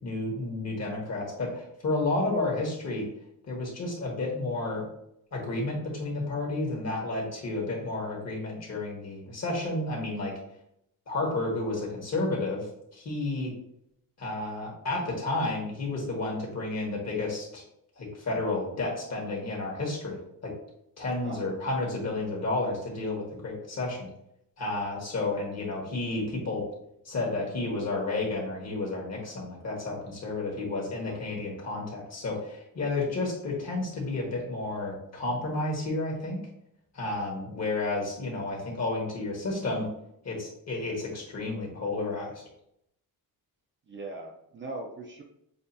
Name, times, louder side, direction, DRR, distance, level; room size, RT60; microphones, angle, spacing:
voice 1, 0.0-3.0 3.5-4.9 5.3-10.3 11.1-13.5 14.2-17.6 18.0-20.5 21.0-24.1 24.6-26.6 27.0-36.4 36.9-39.9 40.2-42.3, left 2 dB, 45° left, -2 dB, 1.5 m, -31 dB
voice 2, 43.9-45.2, right 2 dB, 30° right, 1 dB, 0.6 m, -40 dB
6.4 x 2.5 x 2.7 m, 0.75 s
wide cardioid pair, 150°, 36 cm